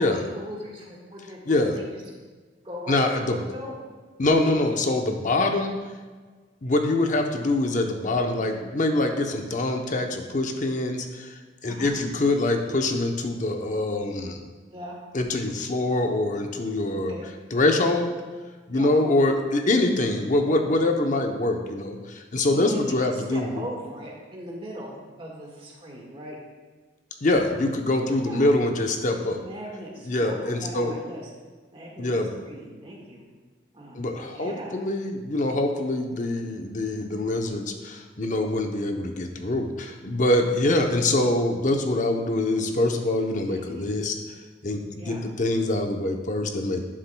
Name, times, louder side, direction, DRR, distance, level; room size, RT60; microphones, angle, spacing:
voice 1, 0.0-2.0 2.6-3.7 4.5-4.6 11.7-12.0 14.7-15.0 16.9-17.3 18.7-19.0 22.5-26.4 28.1-28.5 29.3-31.3 31.7-32.1 32.5-33.2 33.7-34.1 34.3-34.8 43.5-43.9 45.0-45.2, equal, 30° right, -2 dB, 1.6 m, -38 dB
voice 2, 1.5-1.8 2.9-3.4 4.2-5.8 6.6-14.4 15.1-17.1 17.5-18.2 18.7-23.5 27.2-29.4 30.1-30.9 32.0-32.3 33.9-44.1 44.6-46.8, left 2 dB, 45° left, 4 dB, 0.8 m, -24 dB
11.0 x 7.4 x 2.2 m, 1.4 s
head